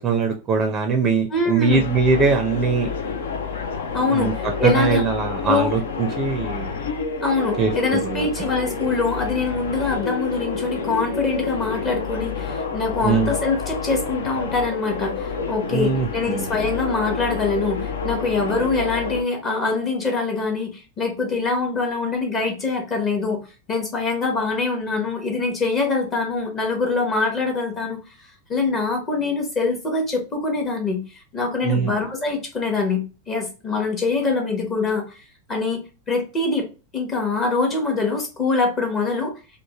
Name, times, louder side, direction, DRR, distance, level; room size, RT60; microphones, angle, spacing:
voice 1, 0.0-2.9 4.1-6.8 7.6-8.3 13.0-13.3 15.7-16.5 31.6-31.9, right 5 dB, 25° right, 3 dB, 0.5 m, -22 dB
voice 2, 1.3-1.8 3.9-5.0 5.5-5.7 7.2-28.0 28.5-31.0 31.3-35.2 35.5-35.8 36.1-36.6 36.9-39.3, left 3 dB, 25° left, 1 dB, 0.8 m, -24 dB
london ks x voices anncmt siren, 1.7-19.2, left 4 dB, 65° left, 0.5 m, -29 dB
3.1 x 2.1 x 2.9 m, 0.32 s
figure-of-eight pair, 90°, 0 cm